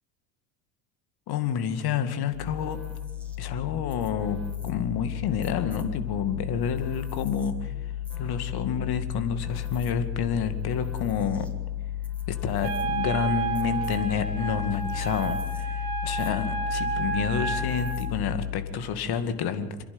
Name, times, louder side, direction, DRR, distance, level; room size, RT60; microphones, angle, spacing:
voice 1, 1.3-2.8 3.4-4.4 4.6-7.7 8.2-11.5 12.3-19.8, left 7 dB, 50° left, 9 dB, 2.2 m, -29 dB
sound 1, 2.3-18.9, left 12 dB, 5° left, 3.1 m, -33 dB
Wind instrument woodwind instrument, 12.6-18.0, right 5 dB, 60° right, 4.2 m, -31 dB
27.0 x 11.0 x 9.7 m, 1.2 s
hypercardioid pair, 65°, 49 cm